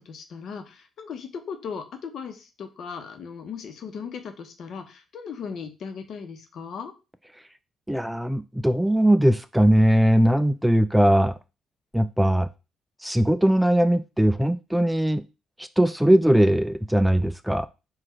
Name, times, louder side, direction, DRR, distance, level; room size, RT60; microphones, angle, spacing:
voice 1, 0.0-6.9, left 6 dB, 65° left, 7 dB, 1.0 m, -37 dB
voice 2, 7.9-11.4 11.9-12.5 13.0-15.2 15.6-17.7, right 1 dB, 5° right, 12 dB, 0.3 m, -20 dB
4.7 x 2.5 x 4.4 m, 0.29 s
cardioid pair, 90°, 0 cm